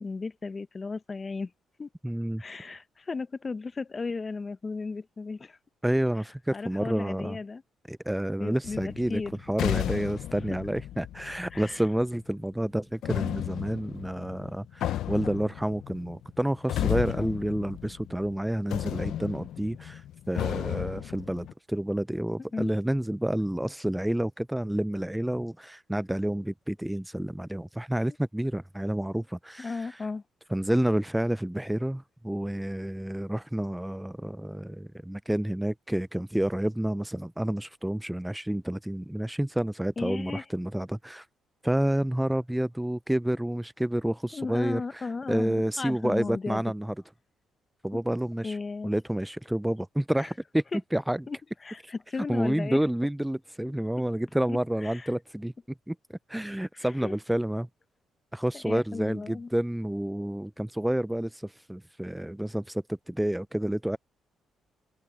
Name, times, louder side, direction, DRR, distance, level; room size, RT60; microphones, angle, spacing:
voice 1, 0.0-1.5 1.8-1.9 2.4-5.6 6.1-7.6 8.4-9.4 10.5-10.6 11.5-11.9 16.8-17.3 22.5-22.7 29.6-30.2 40.0-40.5 44.3-46.6 48.4-48.9 50.1-50.4 50.7-50.8 51.3-52.9 54.5-55.1 56.7-57.2 58.5-59.5, left 4 dB, 30° left, 0.8 m, -35 dB
voice 2, 2.0-2.8 5.8-7.4 7.9-9.2 9.5-30.0 30.5-41.3 41.6-46.9 47.8-48.6 48.8-50.6 50.9-51.3 51.8-51.9 52.3-55.5 55.9-57.7 58.3-64.0, right 1 dB, 5° right, 0.3 m, -29 dB
sound 1, 8.6-12.0 13.0-18.4 18.7-21.5, left 12 dB, 80° left, 0.6 m, -34 dB
open air
cardioid pair, 90°, 0 cm